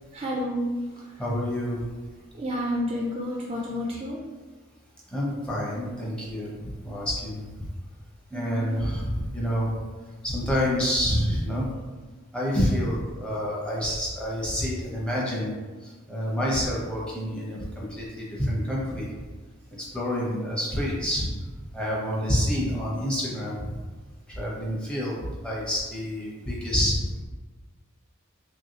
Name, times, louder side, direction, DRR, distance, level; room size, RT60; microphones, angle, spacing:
voice 1, 0.1-1.1 2.3-4.2 8.3-8.8, equal, 30° right, -3 dB, 0.3 m, -30 dB
voice 2, 1.2-1.8 5.1-7.7 8.3-9.7 10.2-11.7 12.3-15.5 15.8-19.1 19.7-21.3 21.7-23.8 24.3-25.1 25.4-27.0, equal, 5° left, -5 dB, 0.6 m, -28 dB
3.1 x 2.6 x 2.8 m, 1.3 s
head